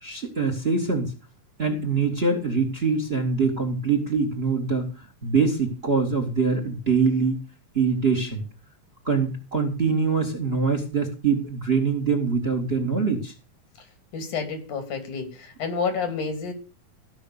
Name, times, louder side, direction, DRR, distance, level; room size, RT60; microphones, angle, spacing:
voice 1, 0.0-1.1 1.6-4.9 5.2-7.4 7.7-8.4 9.1-13.3, right 4 dB, 20° right, 5 dB, 2.1 m, -24 dB
voice 2, 14.1-16.5, left 5 dB, 85° left, 6 dB, 4.4 m, -29 dB
15.0 x 6.2 x 6.8 m, 0.34 s
omnidirectional pair, 3.4 m